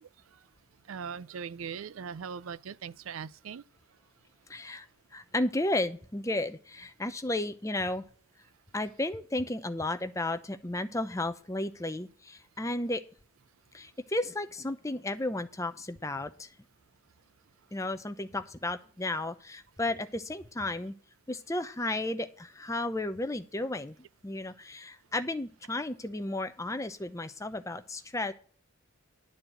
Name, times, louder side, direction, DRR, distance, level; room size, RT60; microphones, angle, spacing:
voice 1, 0.9-3.6, right 6 dB, 80° right, 0.4 m, -40 dB
voice 2, 4.5-4.9 5.1-8.0 8.7-13.0 13.7-16.5 17.7-20.9 21.3-24.0 24.2-28.3, left 2 dB, 15° left, 0.7 m, -33 dB
11.5 x 4.5 x 7.8 m
head